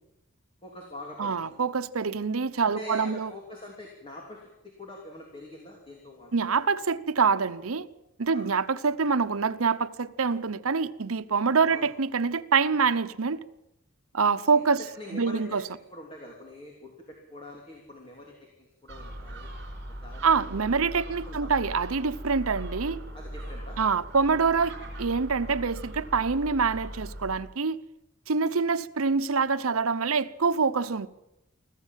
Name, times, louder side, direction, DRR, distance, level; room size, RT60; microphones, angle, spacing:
voice 1, 0.6-1.6 2.6-4.5 4.8-6.4 8.3-8.5 11.7-11.9 14.5-14.6 14.9-15.6 15.9-18.3 18.6-19.5 20.0-20.9 21.2-21.5 23.1-23.8, left 1 dB, 25° left, 3.3 m, -44 dB
voice 2, 1.2-3.3 6.3-7.9 8.2-13.4 14.1-14.8 15.1-15.6 20.2-23.0 23.8-27.8 28.3-31.1, right 5 dB, 85° right, 0.9 m, -25 dB
Gull seagull, 18.9-27.4, equal, 55° right, 4.1 m, -40 dB
24.5 x 15.0 x 7.5 m
head